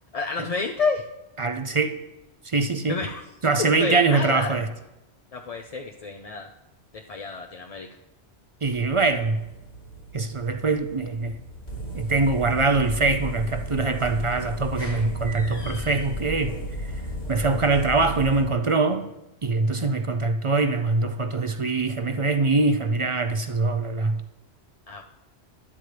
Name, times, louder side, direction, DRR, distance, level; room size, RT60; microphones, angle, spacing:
voice 1, 0.1-1.0 2.9-3.2 3.8-4.5 5.3-6.5 6.9-7.9 24.9-25.0, left 4 dB, 45° left, 3 dB, 0.5 m, -29 dB
voice 2, 1.4-2.0 2.4-3.0 3.4-4.7 8.6-9.4 10.1-11.4 11.9-16.5 16.8-16.9 17.3-19.1 19.4-24.2, right 3 dB, 40° right, 8 dB, 0.5 m, -23 dB
sound 1, 8.6-18.4, equal, 70° left, 3.1 m, -35 dB
12.0 x 11.0 x 3.3 m, 0.98 s
omnidirectional pair, 1.1 m